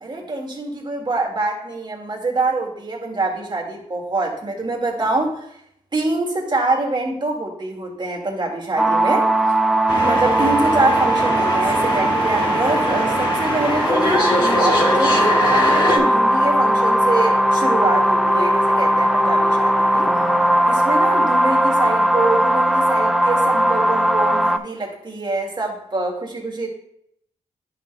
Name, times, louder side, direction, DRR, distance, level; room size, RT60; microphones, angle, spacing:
voice 1, 0.0-5.5 5.9-9.3 10.0-20.1 20.7-26.7, right 2 dB, 35° right, -1 dB, 1.9 m, -25 dB
sound 1, 8.8-24.6, right 1 dB, ahead, 0.4 m, -18 dB
sound 2, 9.9-16.0, left 1 dB, 35° left, 2.2 m, -22 dB
10.0 x 5.8 x 2.2 m, 0.72 s
cardioid pair, 55°, 13 cm